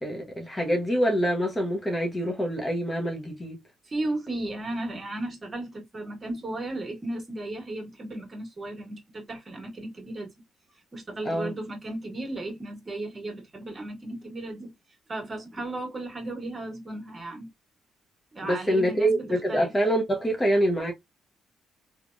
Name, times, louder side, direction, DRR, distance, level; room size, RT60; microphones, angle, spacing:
voice 1, 0.0-3.6 11.2-11.5 18.4-20.9, equal, 20° left, 0.9 m, -25 dB
voice 2, 3.8-10.3 10.9-14.7 15.1-17.5 18.3-19.7, right 2 dB, 30° right, 1.6 m, -35 dB
3.2 x 2.4 x 2.5 m
cardioid pair, 90°, 0 cm